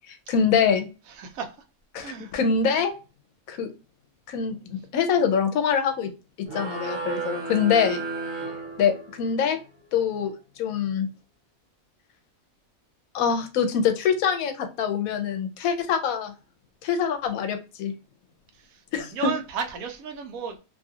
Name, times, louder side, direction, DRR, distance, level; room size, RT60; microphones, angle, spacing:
voice 1, 0.1-0.9 1.9-2.9 3.5-3.7 4.3-6.1 6.5-8.0 8.8-9.6 9.9-10.3 10.6-11.1 13.1-16.3 16.8-17.9 18.9-19.3, left 7 dB, 85° left, 1.0 m, -24 dB
voice 2, 1.1-1.5 2.0-2.3 18.5-20.6, right 6 dB, 85° right, 1.1 m, -34 dB
sound 1, 6.5-9.4, right 3 dB, 65° right, 1.2 m, -33 dB
2.9 x 2.4 x 2.6 m
omnidirectional pair, 1.4 m